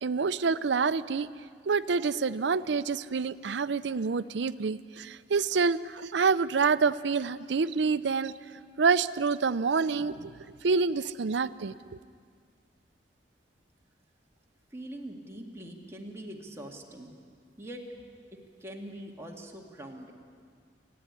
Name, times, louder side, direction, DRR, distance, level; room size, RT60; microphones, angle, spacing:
voice 1, 0.0-1.3 1.7-8.3 8.8-10.3 10.6-11.7, right 5 dB, 80° right, 15 dB, 0.5 m, -27 dB
voice 2, 14.7-17.1 17.6-17.8 18.6-20.1, right 1 dB, 15° right, 0 dB, 2.1 m, -43 dB
28.0 x 10.5 x 9.7 m, 2.1 s
head